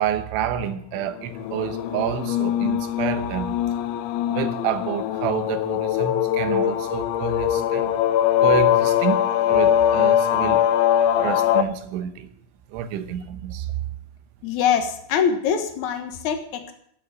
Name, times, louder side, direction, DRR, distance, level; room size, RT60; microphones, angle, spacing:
voice 1, 0.0-3.6 4.3-7.9 8.4-10.6 11.2-12.3 12.7-13.7, right 9 dB, 90° right, 3.4 m, -28 dB
sound 1, 1.3-11.6, left 11 dB, 85° left, 3.1 m, -22 dB
voice 2, 14.4-16.7, left 7 dB, 65° left, 1.9 m, -23 dB
11.5 x 7.8 x 9.7 m
omnidirectional pair, 5.3 m